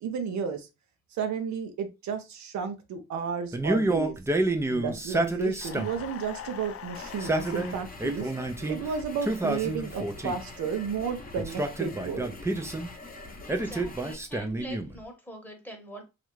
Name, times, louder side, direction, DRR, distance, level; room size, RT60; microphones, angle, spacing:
voice 1, 0.0-0.7 1.2-4.2 4.7-8.3 8.7-12.3, right 6 dB, 65° right, 0.6 m, -32 dB
Male speech man speaking, 3.5-6.1 7.0-8.8 9.2-10.5 11.4-12.9 13.5-15.0, right 2 dB, 10° right, 0.5 m, -29 dB
sound 1, 5.6-7.9, left 9 dB, 50° left, 0.5 m, -42 dB
sound 2, 6.9-14.1, left 3 dB, 30° left, 0.8 m, -44 dB
voice 2, 13.4-16.0, equal, 5° left, 1.0 m, -44 dB
3.1 x 2.4 x 3.0 m
cardioid pair, 90°, 30 cm